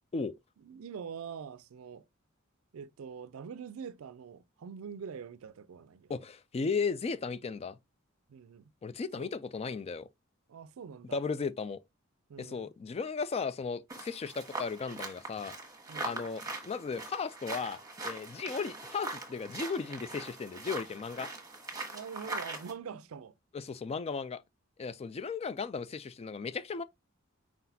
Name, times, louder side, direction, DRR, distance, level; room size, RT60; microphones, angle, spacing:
voice 1, 0.6-2.1 2.7-6.1 8.3-8.6 9.2-9.3 10.5-11.2 12.3-12.7 15.9-16.3 21.9-23.3, right 6 dB, 85° right, 0.4 m, -44 dB
voice 2, 6.1-7.8 8.8-10.1 11.1-11.8 12.4-15.5 16.0-21.3 23.5-24.4 24.8-26.8, left 5 dB, 30° left, 0.3 m, -35 dB
sound 1, 13.9-22.7, right 2 dB, 15° right, 1.3 m, -41 dB
4.7 x 4.0 x 2.7 m
head